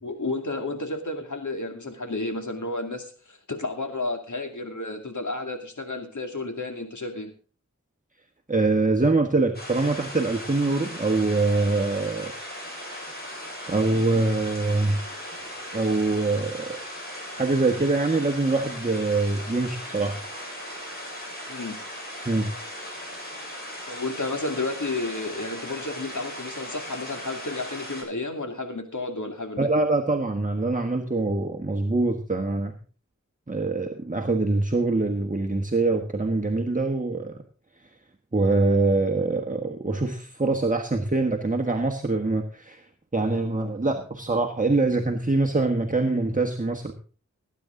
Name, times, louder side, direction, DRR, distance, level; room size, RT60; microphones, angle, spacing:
voice 1, 0.0-7.3 21.5-21.8 23.9-29.7, left 2 dB, 75° left, 5 dB, 2.5 m, -32 dB
voice 2, 8.5-12.3 13.2-13.4 13.7-15.3 15.7-16.8 17.3-20.2 22.2-22.5 29.6-32.7 33.5-37.4 38.3-42.8 43.1-46.9, right 3 dB, 25° right, 3 dB, 1.4 m, -24 dB
sound 1, 9.5-28.0, equal, 30° left, 7.7 m, -38 dB
18.5 x 9.6 x 3.8 m, 0.38 s
wide cardioid pair, 50°, 30 cm